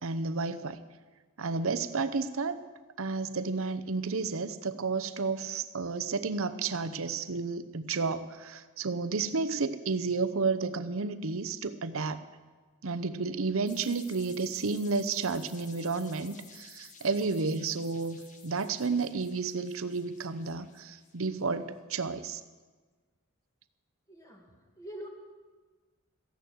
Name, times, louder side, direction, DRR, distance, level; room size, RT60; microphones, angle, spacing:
voice 1, 0.0-0.8 1.4-2.6 3.0-12.2 12.8-22.4, right 4 dB, 65° right, 11 dB, 0.8 m, -31 dB
sound 1, 13.7-21.4, left 5 dB, 35° left, 1.5 m, -54 dB
voice 2, 24.1-25.1, equal, 15° left, 2 dB, 2.0 m, -45 dB
15.0 x 11.0 x 7.9 m, 1.3 s
head